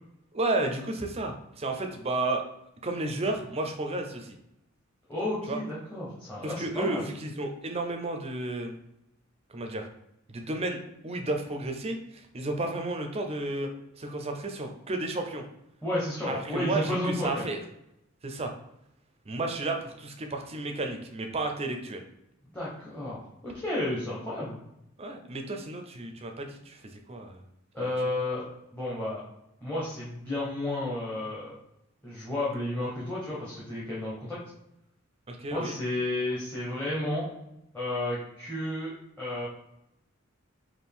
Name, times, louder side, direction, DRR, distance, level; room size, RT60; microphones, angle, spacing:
voice 1, 0.3-2.4 2.8-4.4 5.5-5.6 6.4-8.7 9.5-9.9 10.3-10.8 11.0-13.7 14.0-15.4 16.3-17.6 18.2-18.5 19.3-22.0 25.0-26.8 27.1-27.4 27.8-27.9 35.3-35.7, right 2 dB, 30° right, 4 dB, 0.5 m, -32 dB
voice 2, 5.1-7.0 15.8-17.5 22.5-24.6 27.7-28.4 28.7-29.2 29.6-31.5 32.0-34.4 35.5-37.3 37.7-39.5, left 1 dB, 10° left, -8 dB, 1.0 m, -32 dB
4.3 x 2.5 x 3.5 m, 0.83 s
head